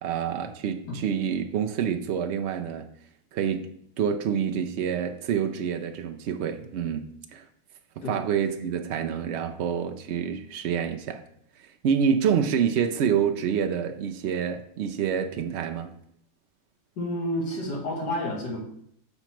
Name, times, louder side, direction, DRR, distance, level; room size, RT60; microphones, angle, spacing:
voice 1, 0.0-2.9 3.3-3.6 4.0-7.4 8.1-11.2 11.6-15.9, right 7 dB, 80° right, 6 dB, 0.6 m, -27 dB
voice 2, 17.0-18.6, left 1 dB, 80° left, -1 dB, 2.1 m, -30 dB
6.9 x 3.0 x 5.7 m, 0.69 s
omnidirectional pair, 1.7 m